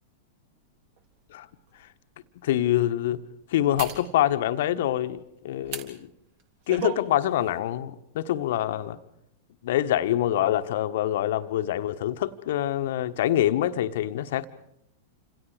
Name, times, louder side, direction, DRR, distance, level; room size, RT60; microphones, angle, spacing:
sound 1, 1.0-1.1 1.7-1.8 3.8-4.1 5.7-5.9 6.4-7.0 7.4-7.6, right 8 dB, 50° right, 3.8 m, -34 dB
voice 1, 2.4-3.2 3.5-5.2 5.4-6.1 6.7-9.0 9.6-14.5, left 12 dB, 55° left, 10 dB, 1.3 m, -25 dB
29.5 x 27.0 x 4.9 m, 0.80 s
figure-of-eight pair, 95°, 0 cm